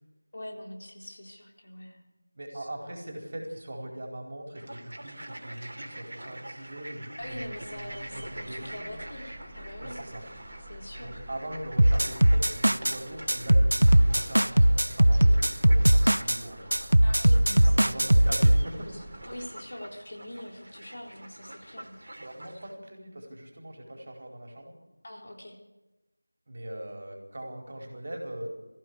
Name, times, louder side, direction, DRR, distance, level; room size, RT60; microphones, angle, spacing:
voice 1, 0.3-2.0 2.5-2.7 7.2-10.0 10.7-11.2 17.0-18.3 18.9-22.0 25.0-25.6, left 1 dB, 45° left, 1 dB, 3.8 m, -43 dB
voice 2, 2.3-8.9 9.8-10.2 11.0-16.6 17.5-18.9 22.2-24.8 26.5-28.5, right 1 dB, 35° right, 1 dB, 4.5 m, -41 dB
sound 1, 4.5-22.7, right 1 dB, 55° right, 2.9 m, -45 dB
sound 2, 7.2-19.5, right 1 dB, 5° right, 1.5 m, -48 dB
sound 3, 11.8-13.0 13.3-16.4 16.7-18.6, right 1 dB, 75° right, 0.7 m, -20 dB
23.0 x 15.5 x 8.3 m, 1.0 s
figure-of-eight pair, 170°, 0 cm